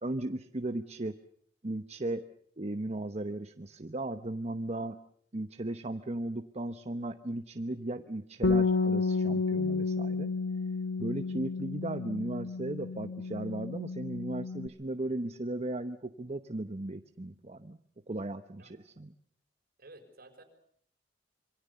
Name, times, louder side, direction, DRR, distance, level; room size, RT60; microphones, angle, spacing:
voice 1, 0.0-1.1 1.6-2.2 2.6-5.0 5.3-10.3 11.0-17.8 18.1-19.1, right 1 dB, 40° right, 9 dB, 1.0 m, -36 dB
Bass guitar, 8.4-14.7, left 4 dB, 80° left, 1.3 m, -31 dB
voice 2, 19.8-20.4, right 2 dB, 55° right, 8 dB, 5.4 m, -53 dB
27.0 x 24.0 x 7.0 m, 0.64 s
head